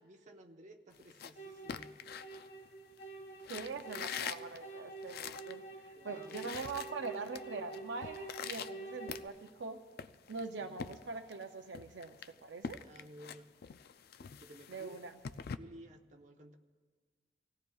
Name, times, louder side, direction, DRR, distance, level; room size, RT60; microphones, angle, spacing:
voice 1, 0.0-1.9 5.9-6.4 10.6-10.7 12.8-13.5 14.4-15.0 15.6-16.5, right 1 dB, 45° right, 3 dB, 1.0 m, -55 dB
sound 1, 0.9-3.0 3.4-5.6 5.9-6.0 6.2-7.4 7.7-9.6 10.0-11.4 11.7-15.6, left 7 dB, 60° left, 0.4 m, -45 dB
sound 2, 1.4-9.3, right 3 dB, 80° left, 1.8 m, -48 dB
voice 2, 3.5-9.8 10.3-12.8 14.7-15.1, right 4 dB, 70° right, 5 dB, 0.5 m, -43 dB
26.0 x 17.0 x 2.4 m, 1.5 s
head